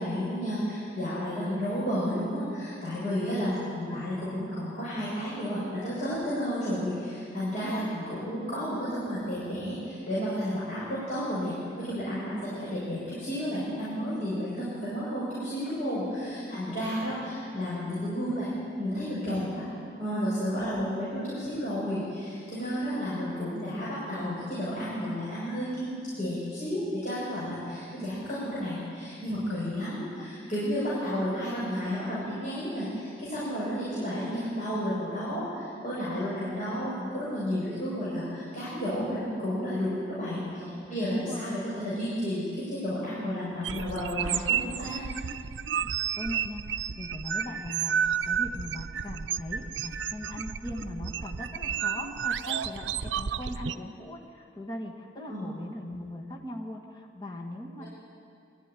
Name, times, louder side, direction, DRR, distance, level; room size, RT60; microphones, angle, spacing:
voice 1, 0.0-12.3 12.6-18.5 18.8-19.6 20.0-45.0 55.3-55.5 57.8-57.9, equal, 40° left, -10 dB, 7.2 m, -32 dB
voice 2, 3.3-3.6 3.9-4.0 7.6-8.0 12.3-12.5 16.2-17.0 20.6-20.9 29.6-29.7 30.2-30.3 40.6-41.4 45.8-57.8, left 1 dB, 25° left, 0 dB, 1.7 m, -40 dB
sound 1, 43.6-53.8, right 8 dB, 85° right, 0.5 m, -31 dB
22.0 x 14.0 x 9.9 m, 2.4 s
head